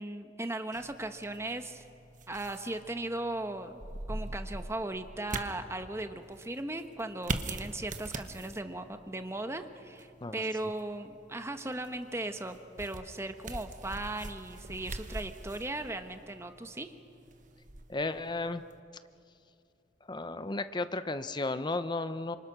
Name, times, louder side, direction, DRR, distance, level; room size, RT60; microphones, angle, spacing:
voice 1, 0.0-1.9 2.3-3.8 4.1-16.9, right 2 dB, 15° right, 7 dB, 1.1 m, -37 dB
sound 1, 0.7-18.8, right 2 dB, 45° right, 1.3 m, -43 dB
voice 2, 17.9-18.6 20.1-22.4, left 2 dB, 25° left, 11 dB, 0.7 m, -33 dB
28.5 x 26.5 x 6.1 m, 2.5 s
head